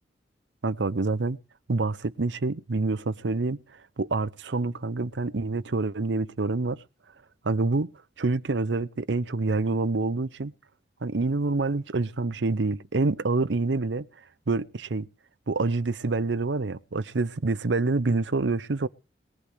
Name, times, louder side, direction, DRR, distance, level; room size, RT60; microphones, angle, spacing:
voice 1, 0.6-1.4 1.7-6.8 7.4-7.9 8.2-10.5 11.0-14.0 14.5-15.1 15.5-18.9, right 3 dB, 75° right, 0.7 m, -27 dB
20.5 x 11.5 x 3.4 m
head